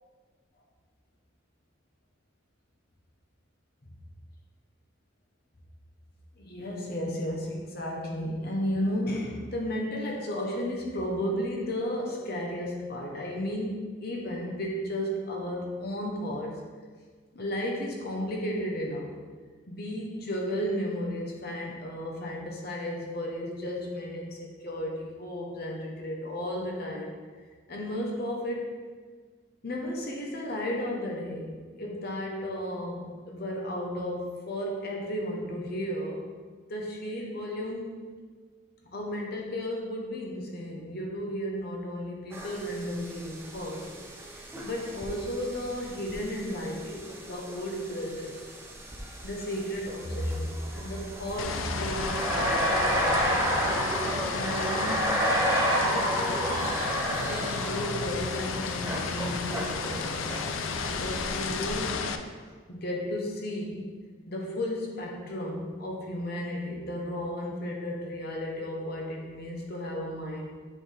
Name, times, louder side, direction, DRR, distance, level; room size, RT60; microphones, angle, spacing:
voice 1, 6.4-16.5 17.3-19.1 19.7-27.1 27.7-28.7 29.6-36.2 36.7-38.1 38.9-43.9 44.6-48.4 49.2-55.2 55.7-56.6 57.3-60.5 60.8-62.1 62.7-63.9 64.3-70.5, equal, 50° left, -1 dB, 0.9 m, -34 dB
sound 1, 42.3-61.9, right 1 dB, 10° right, 0.6 m, -32 dB
sound 2, 51.4-62.2, left 5 dB, 85° left, 0.4 m, -33 dB
7.7 x 3.9 x 3.4 m, 1.5 s
head